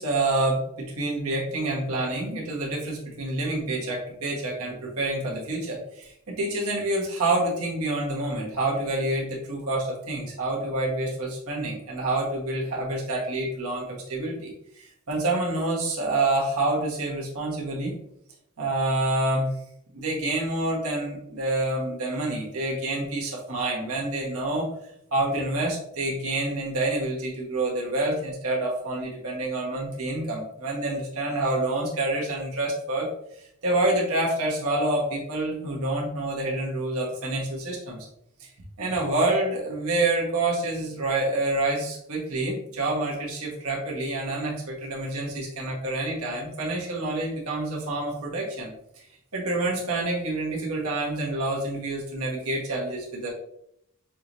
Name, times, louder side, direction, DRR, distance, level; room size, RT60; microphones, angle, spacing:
voice 1, 0.0-18.0 18.6-19.6 19.9-24.7 25.1-33.1 33.6-38.1 38.4-38.5 38.8-48.7 49.0-49.1 49.3-53.3, right 2 dB, 80° right, -3 dB, 1.4 m, -27 dB
6.1 x 3.0 x 2.7 m, 0.75 s
head